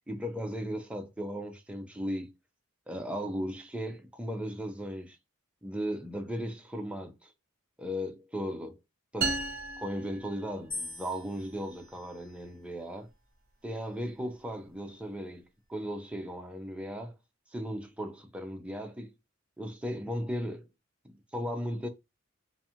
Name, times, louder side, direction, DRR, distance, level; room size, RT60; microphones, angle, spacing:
voice 1, 0.1-2.3 2.9-5.2 5.6-7.3 7.8-8.8 9.1-9.4 9.8-13.1 13.6-17.2 17.5-19.1 19.6-20.7 21.3-21.9, equal, 5° right, 0.4 m, -36 dB
sound 1, 9.2-11.0, right 4 dB, 45° right, 0.8 m, -35 dB
sound 2, 10.7-12.9 13.7-14.3, left 2 dB, 25° left, 1.3 m, -45 dB
2.5 x 2.3 x 2.8 m
head